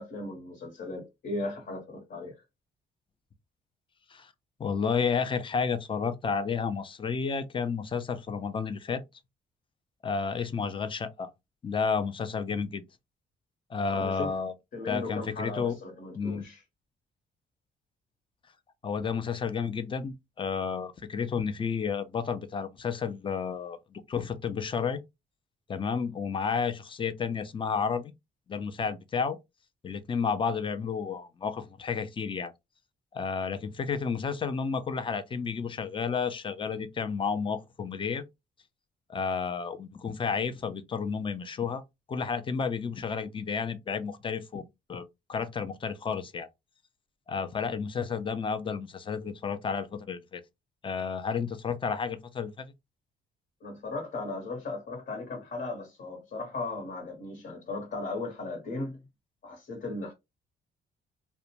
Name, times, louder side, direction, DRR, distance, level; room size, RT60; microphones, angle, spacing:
voice 1, 0.0-2.4 13.9-14.4 14.7-16.6 53.6-59.0 59.4-60.1, left 2 dB, 60° left, 1.0 m, -37 dB
voice 2, 4.6-9.0 10.0-11.3 11.6-12.8 13.7-14.5 14.9-15.8 16.2-16.4 18.8-25.0 25.7-28.1 28.5-29.4 29.8-32.5 33.1-38.2 39.1-41.8 42.1-44.6 44.9-46.5 47.3-50.4 50.8-52.6, left 6 dB, 25° left, 0.4 m, -31 dB
2.4 x 2.1 x 2.9 m
cardioid pair, 90°, 20 cm